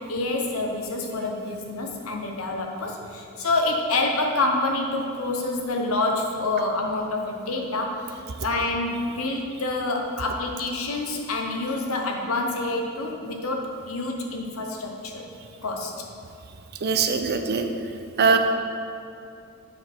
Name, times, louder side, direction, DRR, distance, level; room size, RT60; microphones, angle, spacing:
voice 1, 0.0-15.2 15.6-15.9 18.2-18.4, left 2 dB, 80° left, 2 dB, 1.0 m, -27 dB
voice 2, 16.8-17.7 18.2-18.4, right 5 dB, 50° right, 6 dB, 0.5 m, -21 dB
7.3 x 6.1 x 4.5 m, 2.5 s
head